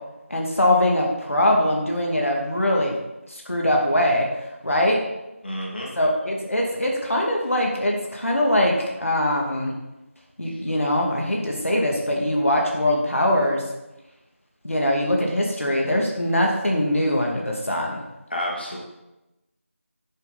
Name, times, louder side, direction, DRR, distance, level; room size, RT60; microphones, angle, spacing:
voice 1, 0.3-2.9 3.3-4.3 4.6-5.0 6.0-9.7 10.4-13.6 14.6-18.0, left 1 dB, 70° left, -1 dB, 2.4 m, -22 dB
voice 2, 5.4-5.9 18.3-18.8, equal, 45° left, -3 dB, 2.4 m, -29 dB
10.5 x 8.1 x 4.3 m, 0.97 s
figure-of-eight pair, 175°, 7 cm